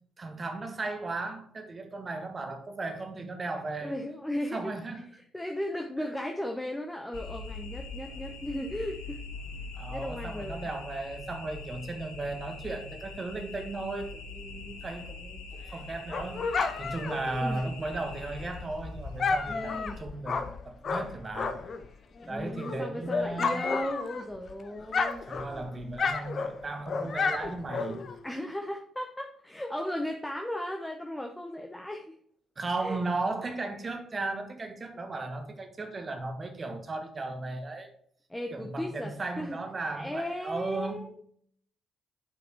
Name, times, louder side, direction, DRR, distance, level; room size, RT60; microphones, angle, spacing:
voice 1, 0.2-3.9 4.5-5.0 9.7-21.7 22.3-23.7 25.3-28.1 32.6-37.9 38.5-41.0, right 2 dB, 35° right, 5 dB, 1.4 m, -36 dB
voice 2, 3.8-4.7 5.3-9.2 9.9-10.7 17.4-17.6 19.5-20.0 22.2-25.3 28.2-32.1 32.8-33.0 38.3-39.6 39.9-41.2, left 1 dB, 10° left, 3 dB, 0.9 m, -36 dB
sound 1, 7.1-20.0, left 4 dB, 80° left, 1.2 m, -43 dB
Dog, 15.6-21.9 22.2-24.5 24.8-28.2, left 4 dB, 50° left, 0.7 m, -32 dB
8.6 x 5.1 x 3.1 m, 0.62 s
figure-of-eight pair, 45°, 0 cm